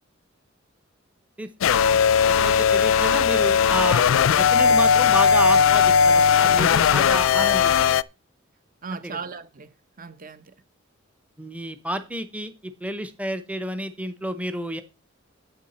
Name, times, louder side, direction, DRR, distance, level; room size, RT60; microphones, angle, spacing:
sound 1, 1.6-8.0, left 7 dB, 75° left, 0.4 m, -18 dB
voice 1, 2.4-7.7 9.0-9.2 11.4-14.8, right 1 dB, 5° right, 0.8 m, -30 dB
voice 2, 6.3-6.8 7.3-8.0 8.8-9.7 10.0-10.5, right 5 dB, 45° right, 0.9 m, -37 dB
10.5 x 7.7 x 4.2 m
head